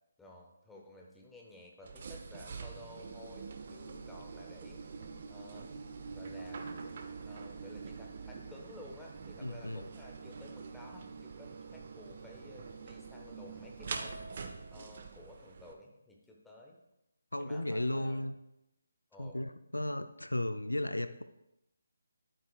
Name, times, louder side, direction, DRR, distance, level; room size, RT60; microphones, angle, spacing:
voice 1, 0.2-5.7 6.1-6.7 7.3-14.2 14.7-16.8 17.4-18.2 19.1-19.4, left 1 dB, 5° left, -1 dB, 1.2 m, -53 dB
sound 1, 1.8-15.7, right 5 dB, 40° right, 0.8 m, -45 dB
voice 2, 9.4-9.9 17.3-18.3 19.2-21.2, left 1 dB, 80° left, 11 dB, 0.5 m, -35 dB
11.5 x 8.6 x 2.4 m, 0.87 s
figure-of-eight pair, 150°, 0 cm